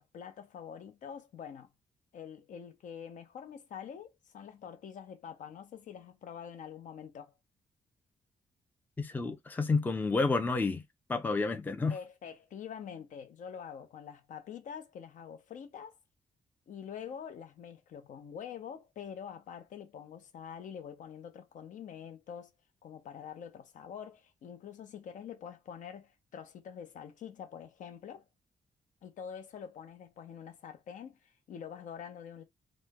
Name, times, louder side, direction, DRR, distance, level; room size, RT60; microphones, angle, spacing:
voice 1, 0.0-1.7 2.1-7.3 11.9-16.0 16.7-22.5 22.8-28.3 29.0-32.4, left 8 dB, 70° left, 0.7 m, -46 dB
voice 2, 9.0-10.8 11.1-11.9, left 3 dB, 15° left, 0.4 m, -30 dB
3.0 x 2.1 x 3.4 m
wide cardioid pair, 145°, 14 cm